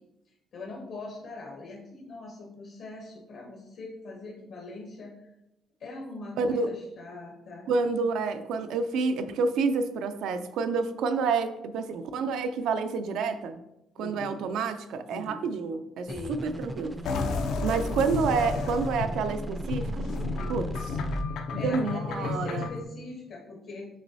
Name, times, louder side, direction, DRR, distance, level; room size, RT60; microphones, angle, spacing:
voice 1, 0.3-5.3 5.8-7.7 14.0-14.4 15.1-15.5 16.0-16.4 17.3-17.5 20.3-20.7 21.5-23.9, left 2 dB, 65° left, -2 dB, 0.8 m, -42 dB
voice 2, 6.4-6.7 7.7-13.6 14.0-17.0 17.6-20.0 20.5-20.7 21.5-22.7, right 4 dB, 85° right, 9 dB, 0.4 m, -28 dB
sound 1, 16.1-21.2, right 1 dB, 10° right, 0.3 m, -36 dB
sound 2, 17.0-22.8, left 4 dB, 80° left, 0.4 m, -32 dB
6.2 x 3.0 x 2.7 m, 0.88 s
cardioid pair, 145°, 0 cm